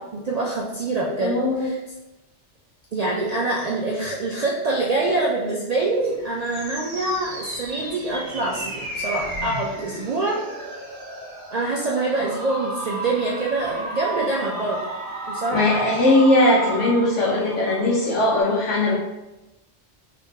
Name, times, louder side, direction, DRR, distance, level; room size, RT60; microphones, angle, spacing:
voice 1, 0.1-1.8 2.9-10.4 11.5-14.8 15.3-15.9, right 2 dB, 70° right, -4 dB, 0.3 m, -25 dB
voice 2, 1.0-1.7 15.5-19.0, left 1 dB, 85° left, -5 dB, 1.0 m, -19 dB
sound 1, 6.0-18.4, right 1 dB, 50° right, 0.9 m, -33 dB
3.5 x 2.8 x 2.7 m, 1.0 s
omnidirectional pair, 1.2 m